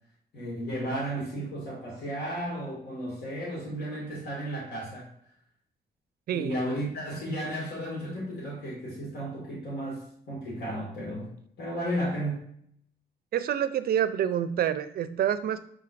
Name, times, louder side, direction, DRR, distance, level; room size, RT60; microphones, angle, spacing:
voice 1, 0.3-5.1 6.3-12.5, equal, 80° left, -5 dB, 1.9 m, -34 dB
voice 2, 6.3-6.6 13.3-15.7, right 10 dB, 65° right, 12 dB, 0.4 m, -27 dB
5.7 x 3.6 x 2.5 m, 0.67 s
cardioid pair, 70°, 17 cm